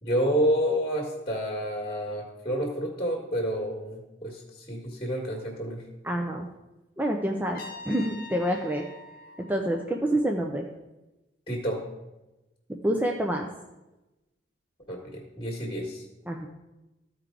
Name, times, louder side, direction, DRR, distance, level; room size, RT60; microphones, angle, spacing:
voice 1, 0.0-4.4 4.7-5.8 11.5-11.8 14.9-16.0, equal, 25° left, 0 dB, 1.4 m, -29 dB
voice 2, 6.0-6.5 7.0-8.8 9.4-10.7 12.8-13.5 16.3-16.5, right 1 dB, 10° right, 1 dB, 0.5 m, -27 dB
Trumpet, 7.5-10.5, left 3 dB, 50° left, 1.1 m, -45 dB
14.0 x 4.6 x 3.8 m, 1.0 s
head